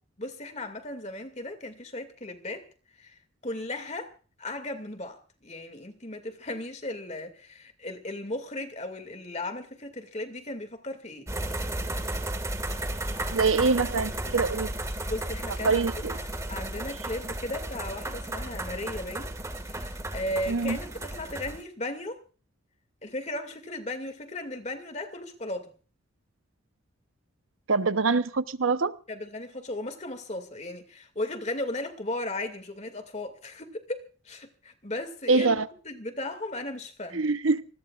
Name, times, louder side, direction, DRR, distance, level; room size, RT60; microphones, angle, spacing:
voice 1, 0.2-2.7 3.0-4.1 4.4-11.3 15.1-15.8 16.1-19.3 19.6-22.2 23.0-25.7 29.1-35.6 35.8-37.3, left 1 dB, 35° left, 2.3 m, -36 dB
sound 1, 11.3-21.6, right 1 dB, 15° right, 1.9 m, -34 dB
voice 2, 13.3-14.7 15.6-16.2 20.5-20.8 27.7-29.0 35.3-35.7 37.1-37.7, right 4 dB, 75° right, 0.9 m, -24 dB
26.5 x 20.0 x 2.5 m
head